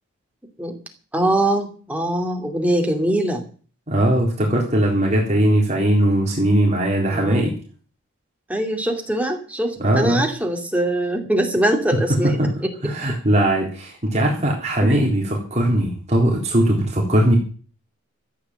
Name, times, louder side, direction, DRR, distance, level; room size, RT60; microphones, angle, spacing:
voice 1, 1.1-3.4 7.1-7.5 8.5-12.7 14.8-15.0, right 1 dB, 5° right, 2 dB, 2.6 m, -22 dB
voice 2, 3.9-7.6 9.8-10.2 12.4-12.5 12.8-17.4, right 1 dB, 30° right, -1 dB, 3.7 m, -19 dB
14.0 x 8.7 x 7.9 m, 0.40 s
head